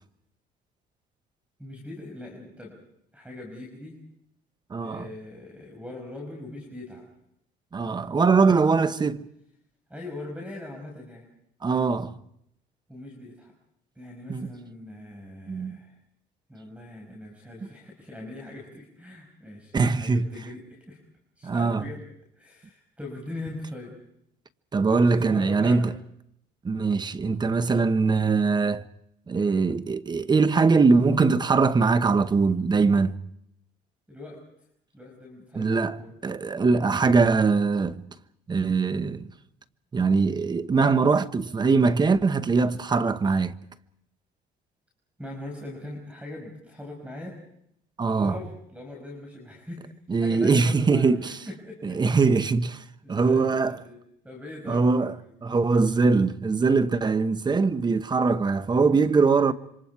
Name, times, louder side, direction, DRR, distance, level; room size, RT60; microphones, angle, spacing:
voice 1, 1.6-2.8 3.1-4.0 4.8-7.1 9.9-11.2 12.9-13.5 14.0-15.9 16.5-21.0 21.4-22.0 22.4-24.0 24.9-25.9 34.1-34.4 34.9-36.1 45.2-47.4 48.1-49.9 50.2-52.0 53.0-55.3 58.7-59.2 59.4-59.5, left 1 dB, 10° right, 5.5 m, -41 dB
voice 2, 4.7-5.1 7.7-9.2 11.6-12.1 14.3-14.5 15.5-15.8 19.7-20.3 21.4-21.8 24.7-25.9 26.6-28.8 29.3-33.2 35.5-36.0 36.2-38.0 38.5-39.2 39.9-43.5 48.0-48.4 50.1-51.4 51.8-52.8 53.1-53.8 54.7-55.1 55.4-59.5, right 4 dB, 25° right, 1.0 m, -22 dB
27.0 x 25.5 x 4.7 m
cardioid pair, 110°, 17 cm